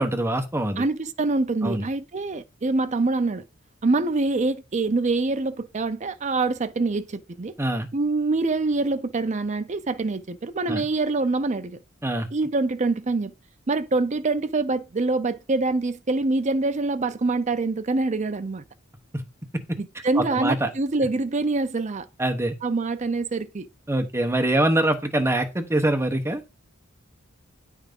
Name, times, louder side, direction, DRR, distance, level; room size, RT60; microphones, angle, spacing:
voice 1, 0.0-0.8 1.6-1.9 7.6-7.9 10.7-10.8 12.0-12.3 19.1-19.2 19.5-19.6 20.2-20.7 22.2-22.5 23.9-26.4, right 1 dB, 15° right, 1.0 m, -24 dB
voice 2, 0.8-3.4 3.8-7.5 7.9-11.8 12.3-13.3 13.7-18.6 19.8-22.1 22.6-23.7, right 3 dB, 35° right, 0.5 m, -25 dB
9.0 x 3.5 x 5.3 m
head